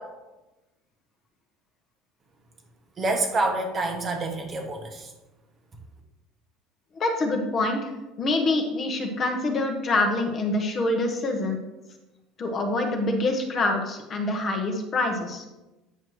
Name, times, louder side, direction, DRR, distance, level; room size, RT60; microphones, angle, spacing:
voice 1, 3.0-5.1, right 2 dB, 25° right, 3 dB, 1.0 m, -27 dB
voice 2, 7.0-7.9 8.2-11.6 12.4-15.5, left 2 dB, 25° left, 3 dB, 0.9 m, -25 dB
8.9 x 6.3 x 3.1 m, 1.0 s
cardioid pair, 165°, 0 cm